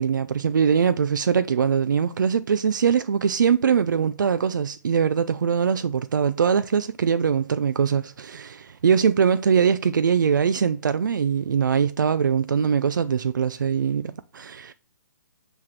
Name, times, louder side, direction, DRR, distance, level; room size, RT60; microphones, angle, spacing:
voice 1, 0.0-14.7, right 7 dB, 90° right, 0.4 m, -22 dB
9.6 x 3.5 x 5.9 m
hypercardioid pair, 160°, 10 cm